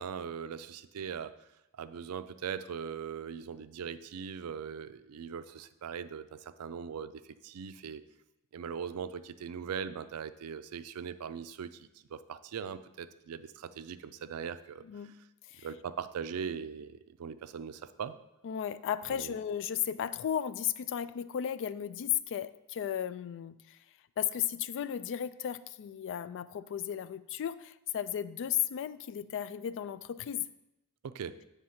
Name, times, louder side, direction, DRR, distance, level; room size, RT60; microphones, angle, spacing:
voice 1, 0.0-1.3 1.8-8.0 8.5-14.8 15.6-18.1 19.1-19.3 31.0-31.4, right 7 dB, 85° right, 12 dB, 0.4 m, -40 dB
voice 2, 14.8-15.2 15.5-15.7 18.4-23.8 24.2-30.5, left 9 dB, 55° left, 15 dB, 0.3 m, -35 dB
7.6 x 3.4 x 5.6 m, 0.90 s
head